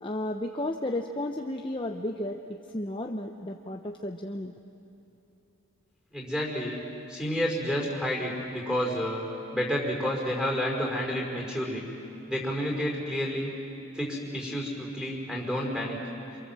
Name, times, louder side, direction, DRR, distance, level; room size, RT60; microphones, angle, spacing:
voice 1, 0.0-4.5, left 1 dB, 25° left, 3 dB, 0.8 m, -33 dB
voice 2, 6.1-6.8 7.1-11.8 12.3-13.5 13.9-16.0, equal, 5° right, -2 dB, 5.2 m, -30 dB
28.0 x 28.0 x 7.6 m, 2.7 s
head